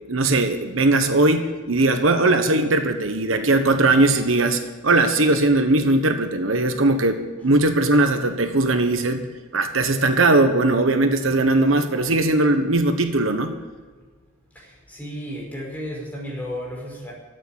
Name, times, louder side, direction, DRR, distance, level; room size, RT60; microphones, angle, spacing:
voice 1, 0.1-9.3 9.5-13.5, right 2 dB, 80° right, 7 dB, 1.2 m, -19 dB
voice 2, 14.6-17.1, equal, 10° left, -4 dB, 5.2 m, -33 dB
14.0 x 8.6 x 8.8 m, 1.5 s
head